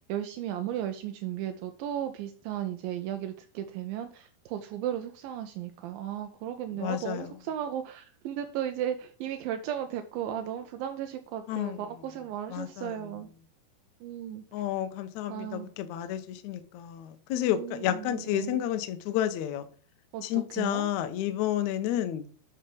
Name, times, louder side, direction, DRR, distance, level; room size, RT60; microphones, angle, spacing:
voice 1, 0.1-13.3 14.0-14.4 15.3-15.7 17.5-18.6 20.1-20.9, right 10 dB, 80° right, 2.3 m, -35 dB
voice 2, 6.8-7.3 11.5-11.8 12.5-13.0 14.5-19.7 20.2-22.2, left 11 dB, 90° left, 1.7 m, -31 dB
9.9 x 3.4 x 5.3 m
omnidirectional pair, 4.3 m